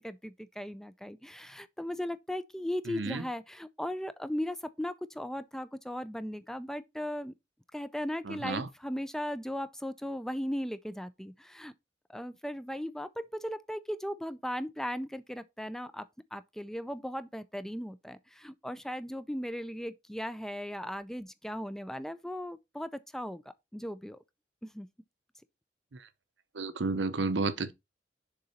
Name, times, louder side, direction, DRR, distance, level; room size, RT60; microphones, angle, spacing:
voice 1, 0.0-7.3 7.7-11.7 12.1-16.1 16.3-23.4 23.7-24.2 24.6-24.9, equal, 5° left, 0.4 m, -37 dB
voice 2, 2.9-3.2 8.3-8.7 26.5-27.7, right 3 dB, 75° right, 0.8 m, -31 dB
6.7 x 3.9 x 4.2 m
head